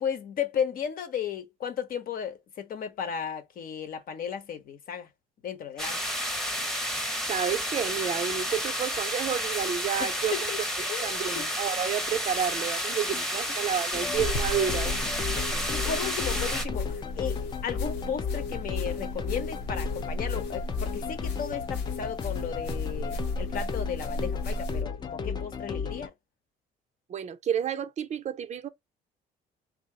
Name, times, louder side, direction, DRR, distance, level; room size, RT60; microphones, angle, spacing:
voice 1, 0.0-5.1 5.4-6.0 10.0-10.6 10.9-11.5 13.1-13.2 15.2-26.1, left 7 dB, 55° left, 0.9 m, -35 dB
sound 1, 5.8-16.7, equal, ahead, 0.8 m, -31 dB
voice 2, 7.3-14.9 27.1-28.7, right 8 dB, 45° right, 0.5 m, -30 dB
sound 2, 13.9-26.1, left 6 dB, 25° left, 0.5 m, -34 dB
sound 3, 14.1-24.8, left 1 dB, 90° left, 1.0 m, -36 dB
3.7 x 2.8 x 2.8 m
cardioid pair, 110°, 17 cm